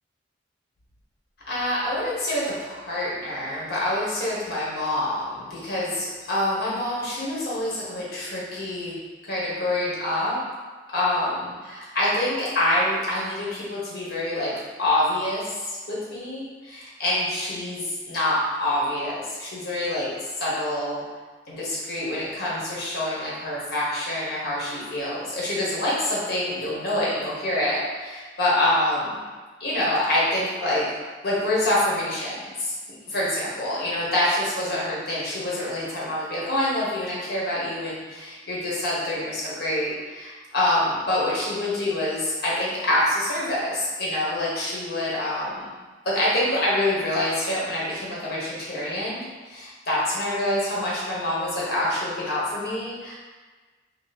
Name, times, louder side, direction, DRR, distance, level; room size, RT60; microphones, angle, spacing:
voice 1, 1.5-9.0 9.3-10.4 10.9-14.5 14.8-20.1 20.4-21.0 21.5-29.2 29.6-30.8 31.2-32.7 33.1-45.7 46.0-53.1, left 1 dB, 55° left, -6 dB, 1.3 m, -26 dB
3.1 x 3.0 x 4.1 m, 1.4 s
head